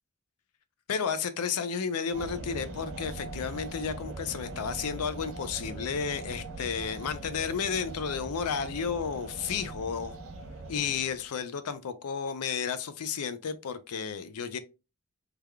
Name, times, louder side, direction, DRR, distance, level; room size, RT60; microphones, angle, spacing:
voice 1, 0.9-10.1 10.7-14.6, left 6 dB, 85° left, 0.5 m, -32 dB
sound 1, 2.1-11.3, right 2 dB, 60° right, 0.8 m, -41 dB
3.4 x 3.3 x 2.2 m
head